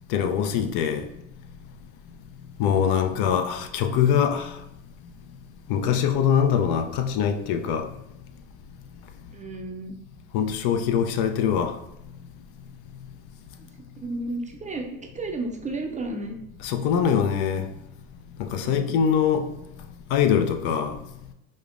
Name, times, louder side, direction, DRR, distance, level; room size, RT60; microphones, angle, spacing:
voice 1, 0.1-1.0 2.6-4.5 5.7-7.9 10.3-11.7 16.6-17.7 18.4-19.5 20.1-21.0, left 8 dB, 75° left, 0.5 m, -23 dB
voice 2, 9.3-10.0 13.6-13.7 14.0-16.4 18.5-19.0, right 2 dB, 20° right, 0.4 m, -33 dB
5.0 x 2.0 x 2.5 m
supercardioid pair, 100°, 38 cm